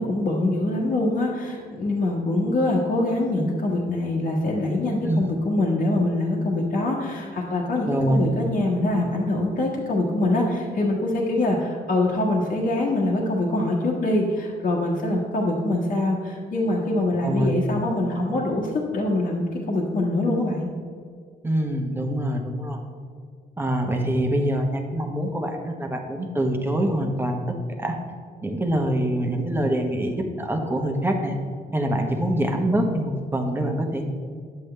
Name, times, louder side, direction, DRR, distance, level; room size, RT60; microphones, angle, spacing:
voice 1, 0.0-20.7, left 2 dB, 55° left, -4 dB, 1.5 m, -24 dB
voice 2, 7.9-8.3 17.2-17.5 21.4-22.8 23.6-27.4 27.8-27.9 28.4-31.4 31.7-34.1, right 1 dB, 15° right, 3 dB, 1.2 m, -24 dB
10.5 x 8.0 x 3.4 m, 2.1 s
cardioid pair, 105°, 17 cm